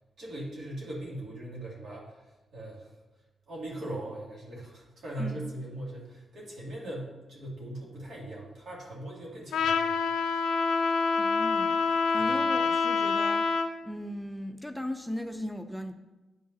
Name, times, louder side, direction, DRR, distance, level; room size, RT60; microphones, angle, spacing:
voice 1, 0.2-2.2 2.5-2.9 3.5-9.9 12.2-12.3, right 1 dB, 70° right, -4 dB, 2.3 m, -40 dB
Trumpet, 9.5-13.7, left 4 dB, 85° left, 0.4 m, -26 dB
voice 2, 11.2-13.5 13.8-15.9, left 1 dB, 5° left, 6 dB, 0.5 m, -37 dB
9.3 x 5.3 x 2.7 m, 1.1 s
supercardioid pair, 55°, 0 cm